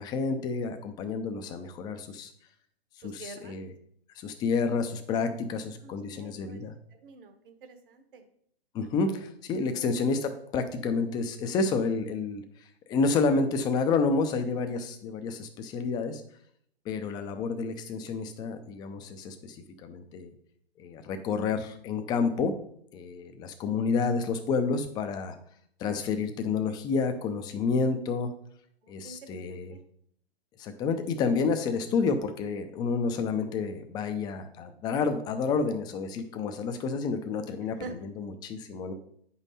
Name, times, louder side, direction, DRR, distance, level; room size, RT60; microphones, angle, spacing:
voice 1, 0.0-2.3 3.0-3.7 4.2-6.7 8.7-12.4 12.9-16.2 16.9-19.6 19.8-20.3 20.8-22.6 22.9-25.3 25.8-28.3 28.9-29.7 30.6-38.9, left 4 dB, 15° left, 8 dB, 0.5 m, -29 dB
voice 2, 3.0-3.6 5.1-5.2 5.8-6.6 7.0-8.2 9.0-9.2 9.6-9.8 28.8-29.8 37.8-37.9, right 4 dB, 55° right, 8 dB, 1.3 m, -47 dB
8.7 x 5.5 x 4.1 m, 0.67 s
hypercardioid pair, 130°, 31 cm